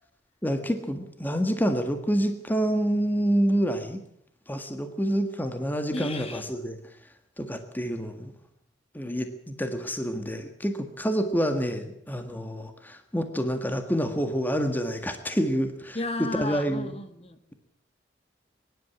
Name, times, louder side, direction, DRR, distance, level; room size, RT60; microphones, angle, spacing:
voice 1, 0.4-4.0 4.5-6.8 7.4-8.3 8.9-16.0 16.3-17.0, equal, 10° left, 6 dB, 1.6 m, -27 dB
voice 2, 5.9-6.5 15.9-17.4, left 2 dB, 35° left, 8 dB, 1.9 m, -33 dB
23.5 x 11.5 x 9.9 m, 0.73 s
head